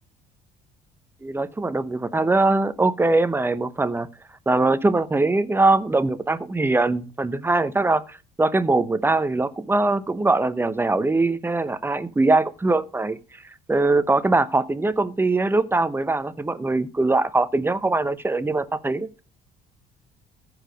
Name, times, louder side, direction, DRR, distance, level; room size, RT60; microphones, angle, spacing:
voice 1, 1.2-4.1 4.5-13.2 13.7-19.1, right 2 dB, 15° right, 0.8 m, -22 dB
14.5 x 4.9 x 5.1 m
cardioid pair, 110°, 17 cm